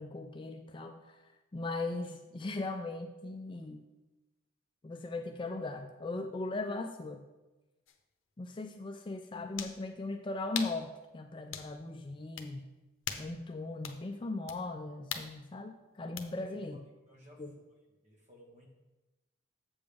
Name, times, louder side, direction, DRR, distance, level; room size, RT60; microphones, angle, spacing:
voice 1, 0.0-3.9 4.8-7.2 8.4-12.7 13.2-16.8 17.4-17.5, left 2 dB, 25° left, 5 dB, 0.3 m, -39 dB
sound 1, 7.9-8.0 9.6-9.8 10.5-10.8 11.5-11.7 12.4-12.5 13.0-13.3 13.8-14.0 14.5-14.6 15.1-15.3 16.2-16.3, left 8 dB, 80° left, 0.7 m, -39 dB
voice 2, 16.4-16.8 17.1-17.7 18.0-18.7, left 1 dB, 35° right, -1 dB, 1.5 m, -57 dB
7.7 x 7.0 x 3.5 m, 1.1 s
head